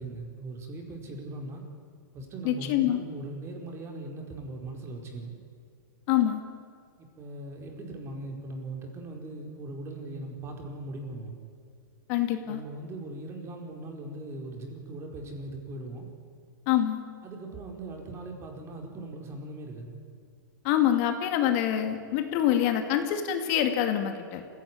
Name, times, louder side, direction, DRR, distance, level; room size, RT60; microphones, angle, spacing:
voice 1, 0.0-1.6 2.1-5.4 7.0-11.4 12.4-16.1 17.2-20.0, right 2 dB, 25° right, 2 dB, 4.7 m, -40 dB
voice 2, 2.4-3.0 6.1-6.4 12.1-12.6 16.7-17.0 20.6-24.4, left 11 dB, 45° left, 6 dB, 2.4 m, -25 dB
26.0 x 16.5 x 9.8 m, 2.4 s
hypercardioid pair, 140°, 11 cm